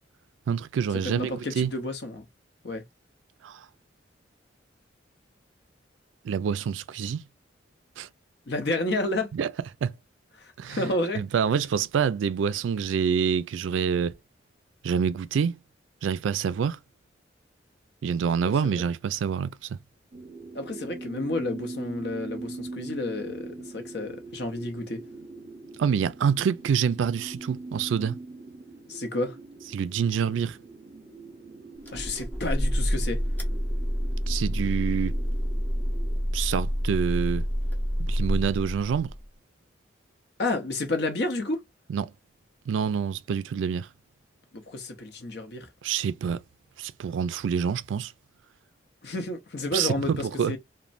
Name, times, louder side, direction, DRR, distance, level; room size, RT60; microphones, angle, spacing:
voice 1, 0.5-1.7 3.4-3.7 6.2-7.2 8.0-8.1 9.3-9.5 9.8-9.9 10.6-10.9 11.2-14.1 14.8-15.6 16.0-16.8 18.0-19.8 25.8-28.2 29.7-30.6 34.3-35.2 36.3-37.5 38.0-39.1 41.9-42.1 42.7-43.9 45.8-46.4 46.8-48.1 49.7-50.6, right 7 dB, 80° right, 0.3 m, -27 dB
voice 2, 1.0-2.2 2.6-2.8 8.5-9.3 10.4-11.3 18.4-18.8 20.5-25.0 28.9-29.4 31.9-33.2 40.4-41.6 44.5-45.7 49.0-50.6, left 2 dB, 60° left, 0.7 m, -31 dB
sound 1, 20.1-36.2, right 3 dB, 45° right, 0.6 m, -42 dB
sound 2, 31.9-39.2, equal, 10° left, 0.6 m, -28 dB
3.1 x 2.1 x 2.4 m
head